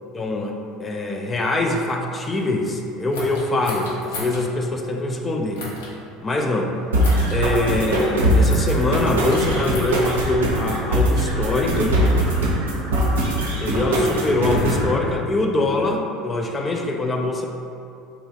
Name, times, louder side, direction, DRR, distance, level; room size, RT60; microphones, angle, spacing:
voice 1, 0.1-0.5 0.8-5.6 6.2-6.7 7.3-12.0 13.6-17.5, left 2 dB, 25° left, 2 dB, 0.3 m, -23 dB
sound 1, 3.1-4.4 5.5-5.9 7.0-7.4 8.5-8.8 9.3-9.9 10.8-12.2, left 2 dB, 80° left, 0.6 m, -34 dB
sound 2, 6.9-14.9, right 1 dB, 85° right, 0.5 m, -21 dB
sound 3, 9.9-15.9, equal, 40° right, 0.6 m, -33 dB
3.8 x 2.3 x 2.7 m, 2.6 s
hypercardioid pair, 75°, 0 cm